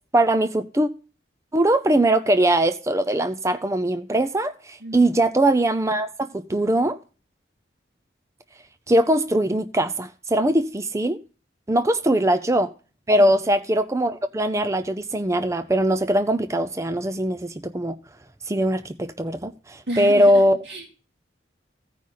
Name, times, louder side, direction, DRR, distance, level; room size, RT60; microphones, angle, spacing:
voice 1, 0.1-0.9 1.5-7.0 8.9-11.2 11.7-12.7 13.1-18.0 18.5-20.6, right 1 dB, 15° right, 0.5 m, -21 dB
voice 2, 19.9-20.9, right 1 dB, 65° right, 3.3 m, -32 dB
15.0 x 5.4 x 6.5 m
head